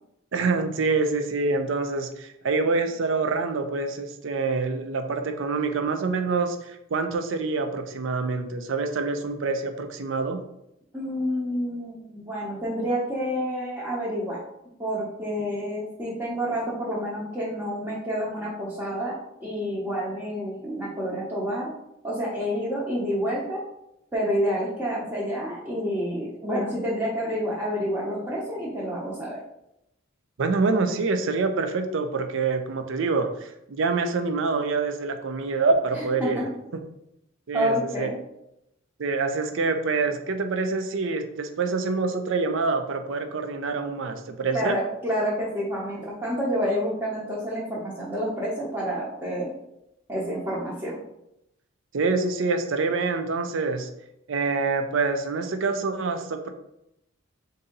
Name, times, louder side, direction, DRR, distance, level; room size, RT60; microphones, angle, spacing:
voice 1, 0.3-10.4 30.4-36.5 37.5-38.1 39.0-44.8 51.9-53.9 54.3-56.5, right 4 dB, 65° right, 7 dB, 0.5 m, -26 dB
voice 2, 10.9-14.4 14.8-19.1 19.4-21.7 22.0-23.6 24.1-29.4 35.9-36.4 37.5-38.2 44.5-49.5 50.1-51.0, equal, 15° right, -8 dB, 0.9 m, -28 dB
4.0 x 2.6 x 3.8 m, 0.83 s
head